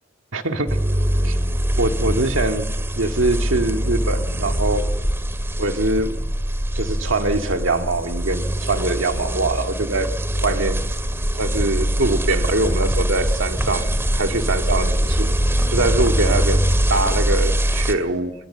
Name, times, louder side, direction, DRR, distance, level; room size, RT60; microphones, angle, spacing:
voice 1, 0.3-0.8 1.2-1.4 1.8-4.9 5.6-6.2 6.7-10.9 11.3-15.4 15.7-16.6 16.9-18.3, right 2 dB, 75° right, 5 dB, 2.1 m, -23 dB
sound 1, 0.7-17.9, equal, 15° right, 2.1 m, -22 dB
27.5 x 22.5 x 6.9 m, 1.1 s
head